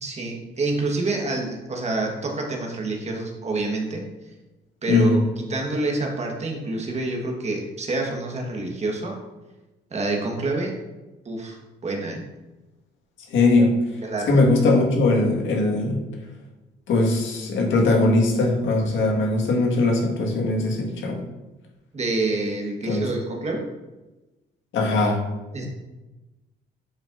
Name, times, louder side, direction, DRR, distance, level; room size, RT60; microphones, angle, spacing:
voice 1, 0.0-4.0 4.8-5.2 5.5-9.2 9.9-10.8 11.2-12.2 14.0-14.3 21.9-23.7 25.5-25.7, right 2 dB, 35° right, 0 dB, 1.3 m, -27 dB
voice 2, 4.9-5.2 13.3-13.8 14.3-16.0 16.9-21.2 22.9-23.1 24.7-25.3, left 2 dB, 75° left, -1 dB, 1.7 m, -20 dB
7.4 x 5.2 x 2.6 m, 1.1 s
cardioid pair, 90°, 20 cm